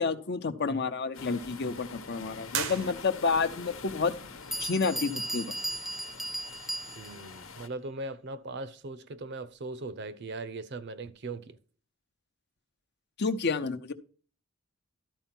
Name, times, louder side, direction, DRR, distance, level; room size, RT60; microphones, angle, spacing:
voice 1, 0.0-4.1 4.6-5.5 13.2-13.9, left 4 dB, 55° left, 0.8 m, -29 dB
sound 1, 1.1-7.7, left 5 dB, 75° left, 1.1 m, -46 dB
sound 2, 2.5-3.5, right 7 dB, 90° right, 1.0 m, -35 dB
Bell, 4.1-4.2 4.5-7.3, right 1 dB, ahead, 0.4 m, -36 dB
voice 2, 7.0-11.6, right 2 dB, 55° right, 0.7 m, -39 dB
12.5 x 4.5 x 5.9 m
head